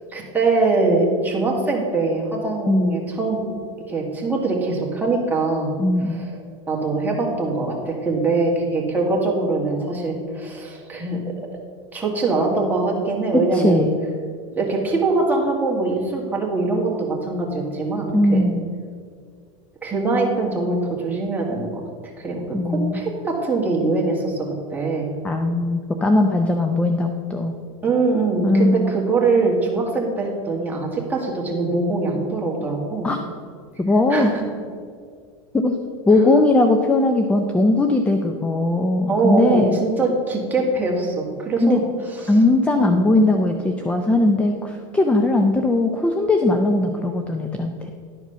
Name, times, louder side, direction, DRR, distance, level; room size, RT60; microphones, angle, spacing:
voice 1, 0.1-3.6 3.9-5.7 6.1-6.4 6.7-11.2 11.9-13.9 14.6-18.5 19.8-21.8 22.2-25.1 27.8-33.1 34.1-34.4 39.1-41.8 42.2-42.3 42.8-43.0, right 3 dB, 10° right, -2 dB, 1.8 m, -22 dB
voice 2, 2.7-3.0 5.8-6.2 13.3-14.0 18.1-18.7 22.5-23.0 25.2-27.5 28.4-28.9 33.0-33.2 33.8-34.3 35.5-35.8 36.1-39.7 41.6-41.8 42.3-47.9, left 2 dB, 10° left, 5 dB, 0.5 m, -19 dB
11.0 x 4.7 x 5.8 m, 2.1 s
supercardioid pair, 130°, 16 cm